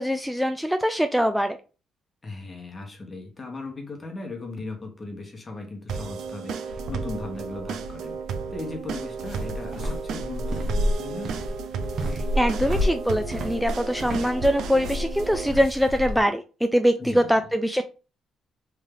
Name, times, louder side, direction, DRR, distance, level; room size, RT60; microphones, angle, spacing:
voice 1, 0.0-1.6 12.1-17.8, equal, ahead, 0.3 m, -23 dB
voice 2, 2.2-8.2 8.5-11.4 17.0-17.5, left 3 dB, 30° left, 1.2 m, -37 dB
sound 1, 5.9-15.5, right 6 dB, 75° right, 0.4 m, -34 dB
sound 2, 6.7-16.2, left 1 dB, 60° right, 1.0 m, -31 dB
3.4 x 2.7 x 3.6 m
cardioid pair, 90°, 0 cm